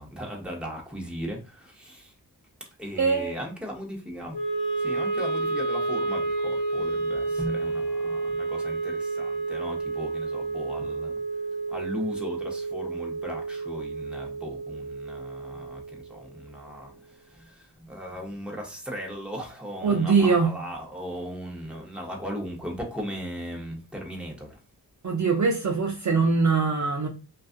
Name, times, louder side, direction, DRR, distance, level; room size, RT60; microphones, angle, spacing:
voice 1, 0.0-2.1 2.8-4.4 4.8-11.1 11.7-24.6, equal, ahead, 0.9 m, -37 dB
voice 2, 3.0-3.3 19.8-20.5 25.0-27.1, right 4 dB, 40° right, 0.6 m, -22 dB
Wind instrument woodwind instrument, 4.3-16.6, right 3 dB, 65° left, 0.7 m, -30 dB
2.4 x 2.4 x 2.5 m
cardioid pair, 55°, 43 cm